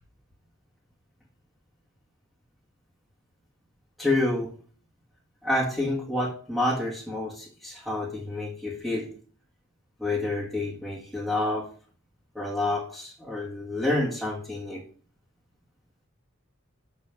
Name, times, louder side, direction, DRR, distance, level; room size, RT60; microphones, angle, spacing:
voice 1, 4.0-4.5 5.4-9.1 10.0-11.7 12.3-14.8, left 2 dB, ahead, -7 dB, 1.6 m, -28 dB
6.7 x 5.4 x 5.8 m, 0.43 s
head